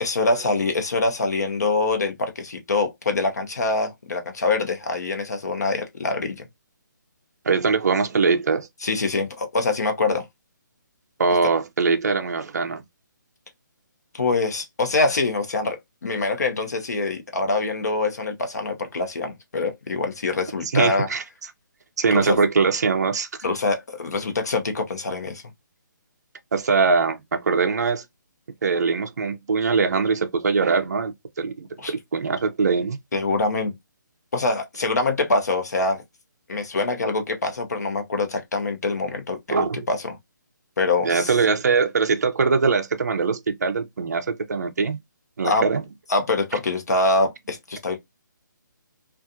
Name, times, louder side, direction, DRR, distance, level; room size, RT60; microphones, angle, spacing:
voice 1, 0.0-6.4 8.8-10.2 14.1-21.1 22.1-22.4 23.4-25.4 31.8-31.9 33.1-33.7 34.3-36.0 36.5-40.2 40.8-41.3 45.4-45.6 46.1-48.0, left 3 dB, 55° left, 0.8 m, -24 dB
voice 2, 7.4-8.7 11.2-12.8 20.7-21.2 22.0-23.3 26.5-28.0 28.6-33.0 39.5-39.9 41.0-45.0 45.4-45.8, right 4 dB, 55° right, 0.4 m, -22 dB
2.4 x 2.4 x 2.6 m
hypercardioid pair, 180°, 11 cm